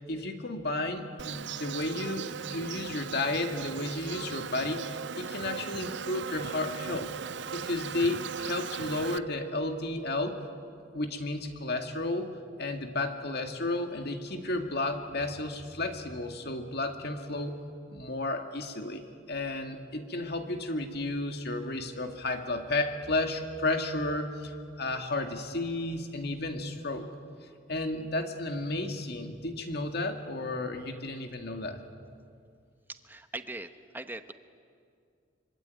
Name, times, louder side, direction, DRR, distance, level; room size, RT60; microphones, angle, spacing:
voice 1, 0.1-10.4 10.9-12.3 12.6-17.5 17.9-27.1 27.7-31.8, left 2 dB, 55° left, 5 dB, 2.2 m, -33 dB
Insect, 1.2-9.2, right 7 dB, 65° right, 0.6 m, -38 dB
voice 2, 32.9-34.3, right 2 dB, 10° right, 9 dB, 1.0 m, -41 dB
25.0 x 25.0 x 9.4 m, 2.3 s
head